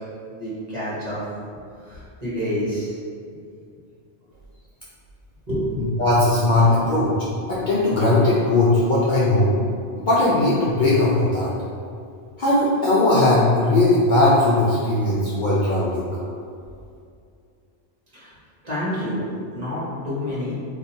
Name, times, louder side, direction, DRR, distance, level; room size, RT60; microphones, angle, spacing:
voice 1, 0.3-1.2 1.8-2.9 5.5-5.7 18.1-18.3 18.6-19.2 19.5-20.5, equal, 35° right, -10 dB, 1.1 m, -28 dB
voice 2, 6.0-7.1 7.5-9.5 9.9-11.5 12.4-16.1, left 2 dB, 55° left, -8 dB, 0.6 m, -18 dB
2.6 x 2.5 x 4.2 m, 2.4 s
omnidirectional pair, 1.2 m